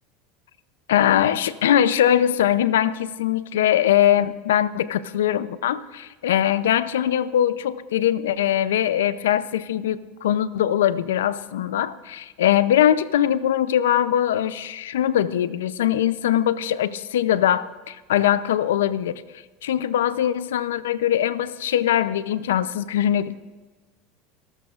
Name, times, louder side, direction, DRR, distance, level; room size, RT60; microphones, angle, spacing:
voice 1, 0.9-19.2 19.6-23.3, left 11 dB, 90° left, 15 dB, 0.6 m, -21 dB
25.0 x 13.5 x 2.5 m, 1.3 s
hypercardioid pair, 100°, 0 cm